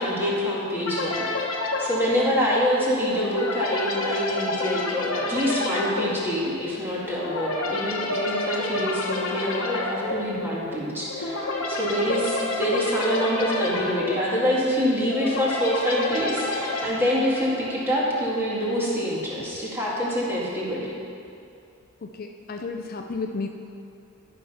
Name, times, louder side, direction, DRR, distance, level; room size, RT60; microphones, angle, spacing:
voice 1, 0.0-1.5 1.8-11.4 11.7-20.9, equal, 10° right, -6 dB, 2.0 m, -26 dB
sound 1, 0.8-18.0, left 2 dB, 65° left, 1.1 m, -29 dB
voice 2, 22.0-23.5, left 4 dB, 45° left, 4 dB, 0.5 m, -32 dB
12.5 x 5.9 x 5.6 m, 2.5 s
head